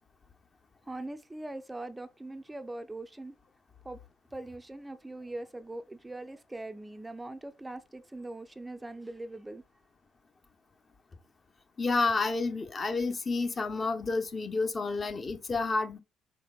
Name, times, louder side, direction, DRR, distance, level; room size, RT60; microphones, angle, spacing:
voice 1, 0.9-3.3 3.8-4.0 4.3-9.6, right 2 dB, 15° right, 0.4 m, -41 dB
voice 2, 11.8-16.0, left 3 dB, 35° left, 0.6 m, -30 dB
4.9 x 3.3 x 2.3 m
supercardioid pair, 65°, 0 cm